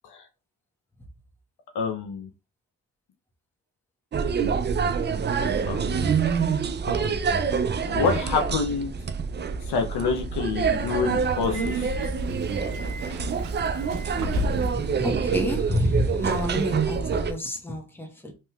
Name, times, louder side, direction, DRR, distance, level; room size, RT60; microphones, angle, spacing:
voice 1, 1.7-2.3 5.7-6.1 7.0-7.2 7.8-8.9 9.7-12.0 16.7-16.8, left 5 dB, 65° left, 0.7 m, -27 dB
sound 1, 4.1-17.3, right 6 dB, 25° right, 0.3 m, -26 dB
Subway metro underground, 10.7-14.9, right 1 dB, 80° right, 0.6 m, -32 dB
voice 2, 14.7-18.3, equal, 5° left, 1.0 m, -28 dB
3.0 x 2.7 x 2.3 m
hypercardioid pair, 40°, 43 cm